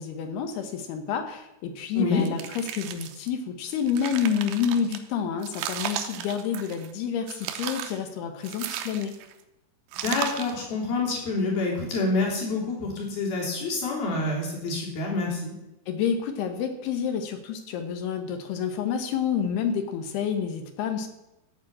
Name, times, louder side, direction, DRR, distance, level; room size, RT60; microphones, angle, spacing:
voice 1, 0.0-9.1 15.9-21.1, left 7 dB, 70° left, 7 dB, 2.8 m, -29 dB
voice 2, 1.9-2.2 10.0-15.5, left 3 dB, 55° left, -3 dB, 4.8 m, -27 dB
sound 1, 2.2-3.3 3.7-5.0 5.4-6.9 7.3-8.0 8.4-9.3 9.9-10.6, right 10 dB, 80° right, 2.9 m, -35 dB
14.0 x 5.1 x 8.6 m, 0.92 s
omnidirectional pair, 5.2 m